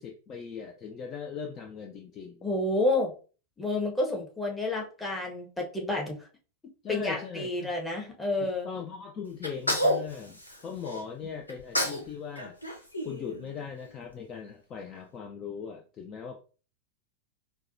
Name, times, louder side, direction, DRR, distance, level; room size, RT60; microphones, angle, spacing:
voice 1, 0.0-2.5 6.8-7.7 8.4-12.6 13.0-16.4, left 6 dB, 30° left, 3 dB, 0.4 m, -39 dB
voice 2, 2.4-3.1 3.6-6.3 6.9-8.7, left 2 dB, 10° left, 0 dB, 0.9 m, -29 dB
Sneeze, 9.4-11.0 11.5-12.1 12.3-13.8, equal, 85° left, 0.8 m, -30 dB
4.5 x 2.2 x 2.6 m, 0.37 s
figure-of-eight pair, 90°, 0 cm